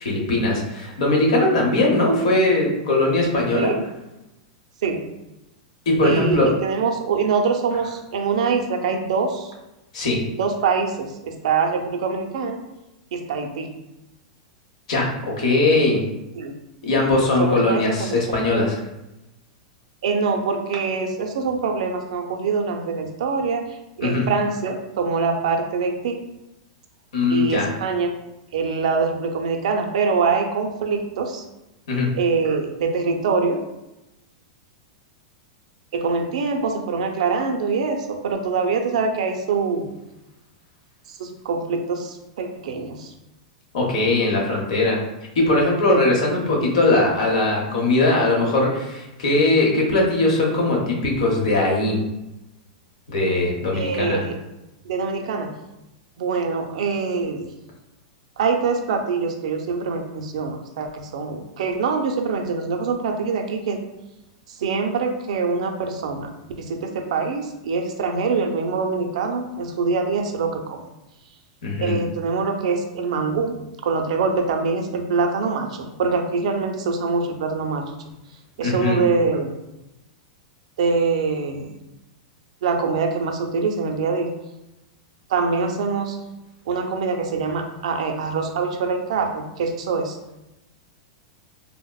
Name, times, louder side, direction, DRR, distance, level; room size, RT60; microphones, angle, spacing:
voice 1, 0.0-3.7 5.9-6.5 9.9-10.2 14.9-16.0 16.8-18.8 24.0-24.3 27.1-27.7 31.9-32.1 43.7-45.0 45.3-52.0 53.1-54.2 71.6-71.9 78.6-79.0, left 2 dB, 75° left, -1 dB, 0.9 m, -20 dB
voice 2, 6.0-9.5 10.4-12.6 13.1-13.7 16.4-16.5 17.4-18.2 20.0-23.6 24.0-26.2 27.3-28.1 28.5-31.4 32.1-33.6 35.9-40.0 41.1-43.1 45.9-46.0 53.7-54.4 54.8-55.5 56.2-57.5 58.4-63.8 64.6-66.3 66.6-70.8 71.8-73.5 73.8-77.9 78.6-79.5 80.8-81.7 82.6-84.4 85.3-86.2 86.7-90.2, right 4 dB, 75° right, 4 dB, 0.4 m, -24 dB
3.5 x 2.0 x 2.3 m, 0.94 s
supercardioid pair, 155°, 4 cm